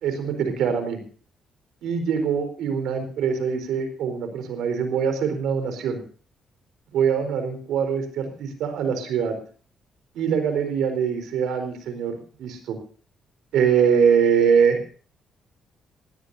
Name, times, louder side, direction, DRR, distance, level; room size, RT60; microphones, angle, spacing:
voice 1, 0.0-1.0 1.8-6.0 6.9-9.3 10.1-12.8 13.5-14.8, right 7 dB, 85° right, 8 dB, 4.3 m, -23 dB
20.5 x 16.5 x 2.8 m, 0.41 s
cardioid pair, 90°, 0 cm